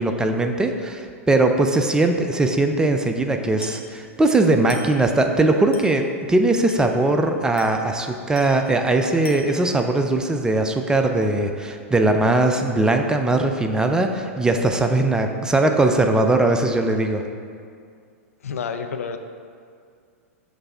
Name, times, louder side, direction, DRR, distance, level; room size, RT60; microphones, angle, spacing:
voice 1, 0.0-17.2, right 2 dB, 10° right, 5 dB, 0.4 m, -20 dB
Glass, 3.6-4.0 4.7-5.0 5.7-6.0 6.7-7.0 7.6-7.9 8.3-8.7 9.2-9.7, left 3 dB, 15° left, 0.9 m, -40 dB
voice 2, 18.4-19.2, left 6 dB, 75° left, 7 dB, 0.4 m, -29 dB
6.0 x 3.3 x 5.3 m, 2.2 s
hypercardioid pair, 100°, 8 cm